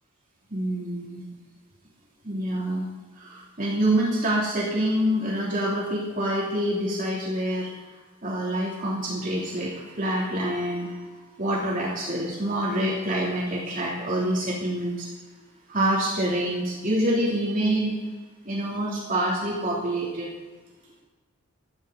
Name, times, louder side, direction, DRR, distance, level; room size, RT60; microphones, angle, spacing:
voice 1, 0.5-1.2 2.2-2.8 3.2-7.7 8.2-11.1 11.4-15.1 15.7-18.0 18.4-20.3, right 1 dB, 40° right, -5 dB, 3.2 m, -26 dB
26.0 x 9.4 x 4.1 m, 1.3 s
head